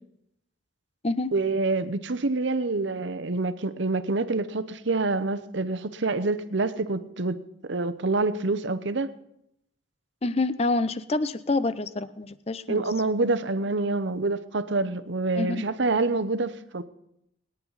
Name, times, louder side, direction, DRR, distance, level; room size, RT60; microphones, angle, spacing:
voice 1, 1.3-7.4 7.7-9.1 12.7-16.8, right 3 dB, 65° right, 0.8 m, -26 dB
voice 2, 10.2-12.8 15.3-15.6, left 2 dB, 30° left, 0.5 m, -27 dB
24.0 x 9.9 x 4.0 m
head